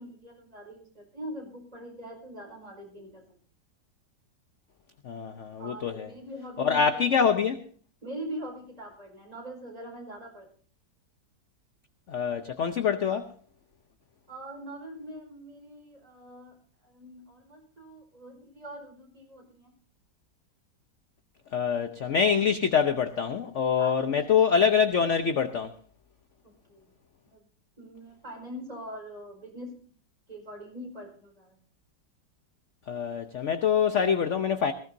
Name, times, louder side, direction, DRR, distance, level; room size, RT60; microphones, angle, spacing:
voice 1, 0.0-3.2 5.6-7.0 8.0-10.5 14.3-16.5 16.8-19.7 23.8-24.2 26.4-26.9 27.3-27.4 27.8-29.8 30.3-31.5, equal, 20° right, 1 dB, 5.0 m, -42 dB
voice 2, 5.0-6.1 6.6-7.6 12.1-13.3 21.5-25.7 32.9-34.7, left 7 dB, 55° left, 8 dB, 1.0 m, -25 dB
19.5 x 16.5 x 2.7 m, 0.43 s
omnidirectional pair, 1.9 m